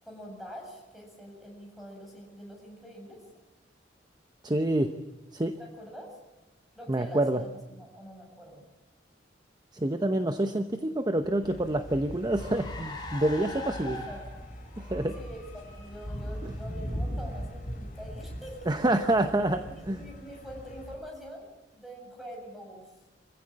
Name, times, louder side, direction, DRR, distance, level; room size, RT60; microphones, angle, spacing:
voice 1, 0.0-3.2 5.6-6.2 6.7-8.6 13.8-14.2 15.2-18.7 19.0-19.1 19.7-22.9, equal, ahead, -1 dB, 7.3 m, -45 dB
voice 2, 4.4-4.9 5.3-5.6 6.9-7.4 9.7-14.1 14.8-15.2 16.4-16.5 18.7-20.0, right 1 dB, 20° right, 7 dB, 0.9 m, -27 dB
Car, 11.2-19.0, left 2 dB, 25° left, 4.2 m, -43 dB
sound 1, 11.4-21.0, equal, 45° left, 7.3 m, -41 dB
25.0 x 16.0 x 8.6 m, 1.1 s
head